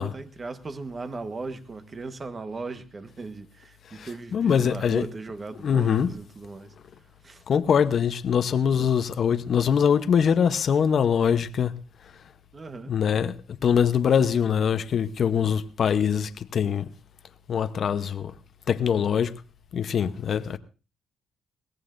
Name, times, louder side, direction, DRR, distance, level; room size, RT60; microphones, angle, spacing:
voice 1, 0.0-6.7 7.2-7.4 12.5-13.0, right 3 dB, 35° right, 1.2 m, -37 dB
voice 2, 3.9-5.1 5.6-6.1 7.5-11.7 12.9-13.4 13.6-16.9 17.5-18.3 18.7-19.3 19.7-20.6, left 7 dB, 55° left, 0.8 m, -23 dB
21.5 x 17.5 x 2.6 m
cardioid pair, 90°, 0 cm